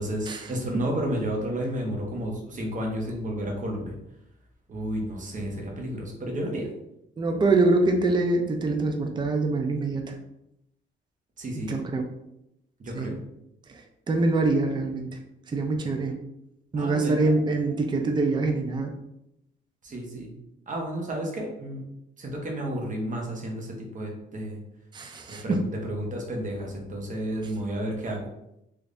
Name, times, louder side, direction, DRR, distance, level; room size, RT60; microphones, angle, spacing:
voice 1, 0.0-3.9 4.7-6.7 11.4-11.7 12.8-13.1 16.8-17.3 19.8-20.3 20.7-21.8 22.2-24.6 25.3-25.6 25.8-28.2, right 1 dB, 40° right, 0 dB, 1.1 m, -31 dB
voice 2, 7.2-10.2 11.7-12.1 12.9-13.1 13.7-13.8 14.1-15.2 15.5-16.2 16.7-18.9 24.9-25.6, right 3 dB, 20° right, 4 dB, 0.5 m, -24 dB
3.3 x 3.3 x 2.6 m, 0.82 s
cardioid pair, 90°, 20 cm